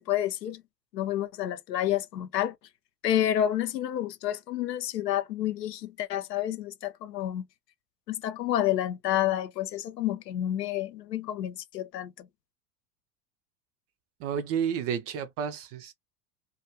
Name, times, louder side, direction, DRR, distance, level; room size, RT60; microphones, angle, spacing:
voice 1, 0.1-0.6 0.9-2.5 3.0-7.4 8.1-12.3, left 12 dB, 80° left, 0.6 m, -29 dB
voice 2, 14.2-15.9, right 7 dB, 30° right, 0.4 m, -31 dB
2.3 x 2.3 x 2.7 m
figure-of-eight pair, 85°, 49 cm